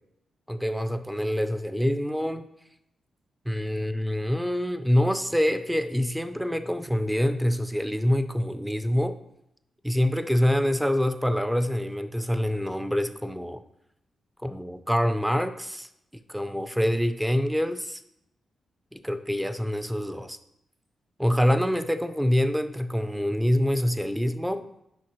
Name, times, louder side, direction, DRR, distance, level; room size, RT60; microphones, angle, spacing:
voice 1, 0.5-2.5 3.5-9.2 9.8-13.6 14.4-15.9 16.3-18.0 18.9-20.4 21.2-24.7, equal, 5° right, 10 dB, 0.4 m, -26 dB
11.5 x 5.8 x 3.0 m, 0.83 s
wide cardioid pair, 145°, 0 cm